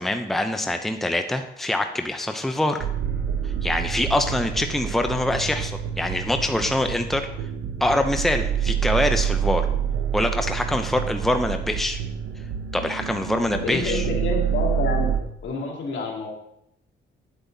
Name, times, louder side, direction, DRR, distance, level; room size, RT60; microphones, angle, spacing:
voice 1, 0.0-2.9 3.6-7.3 7.8-9.7 10.1-12.0 12.7-14.0, left 1 dB, ahead, 6 dB, 0.7 m, -24 dB
sound 1, 2.8-15.2, right 8 dB, 85° right, 1.1 m, -27 dB
voice 2, 13.5-15.2 15.4-16.3, left 4 dB, 70° left, 0 dB, 2.6 m, -28 dB
9.0 x 8.2 x 4.0 m, 0.78 s
cardioid pair, 90°, 20 cm